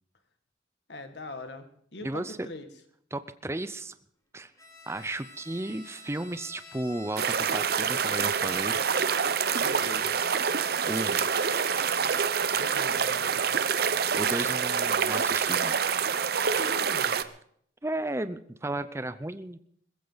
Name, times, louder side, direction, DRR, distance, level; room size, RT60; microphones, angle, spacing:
voice 1, 0.9-2.7 9.6-10.2 12.5-13.7 16.6-17.2, left 2 dB, 65° left, 8 dB, 1.9 m, -42 dB
voice 2, 2.0-2.4 3.1-3.9 4.3-4.5 4.9-8.8 10.9-11.3 14.2-15.8 17.8-19.6, right 1 dB, 15° right, 12 dB, 0.5 m, -34 dB
Bowed string instrument, 4.6-12.4, left 3 dB, 15° left, 3.0 m, -47 dB
sound 1, 7.2-17.2, right 6 dB, 55° right, 0.7 m, -26 dB
21.0 x 15.0 x 4.0 m, 0.65 s
head